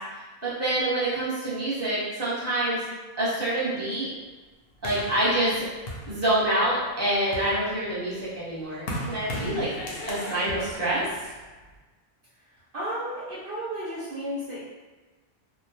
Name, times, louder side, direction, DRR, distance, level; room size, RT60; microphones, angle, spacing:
voice 1, 0.4-2.8 3.2-4.1 4.8-5.6 6.1-9.7 10.1-11.0, right 1 dB, 15° right, -9 dB, 0.7 m, -26 dB
sound 1, 4.8-6.7 7.1-11.8, equal, 70° left, 0.7 m, -37 dB
voice 2, 12.7-14.6, equal, 60° right, -8 dB, 0.7 m, -33 dB
2.2 x 2.2 x 2.7 m, 1.3 s
omnidirectional pair, 1.1 m